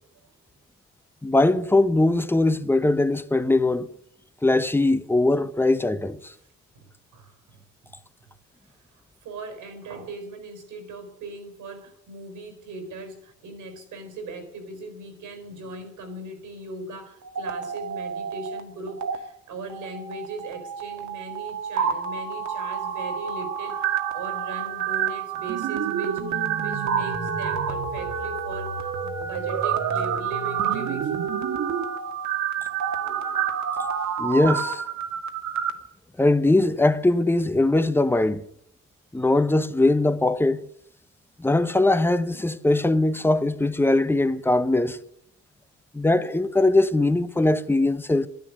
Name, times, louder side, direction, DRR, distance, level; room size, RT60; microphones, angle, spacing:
voice 1, 1.2-3.9 4.4-6.3 34.2-34.8 36.2-38.5 39.1-40.6 41.4-45.0 45.9-48.3, left 2 dB, 5° left, 0.9 m, -21 dB
voice 2, 6.7-7.6 8.6-31.2 33.0-33.5 33.9-34.1, right 2 dB, 85° right, 4.1 m, -39 dB
sound 1, 17.2-18.6 18.9-19.2 19.7-35.7, right 7 dB, 70° right, 1.8 m, -28 dB
11.5 x 10.5 x 9.3 m
cardioid pair, 90°, 30 cm